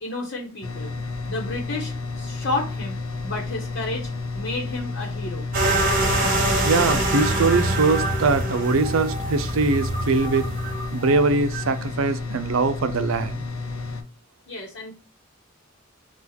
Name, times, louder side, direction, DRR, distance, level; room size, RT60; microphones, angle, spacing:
voice 1, 0.0-0.9 1.3-5.5 14.5-14.9, left 2 dB, 55° left, 1.0 m, -31 dB
sound 1, 0.6-14.0, left 3 dB, 85° left, 0.7 m, -31 dB
sound 2, 5.5-11.7, right 1 dB, 45° right, 1.3 m, -25 dB
voice 2, 6.6-10.5 10.9-13.4, right 3 dB, 85° right, 0.5 m, -22 dB
4.2 x 2.3 x 3.9 m
head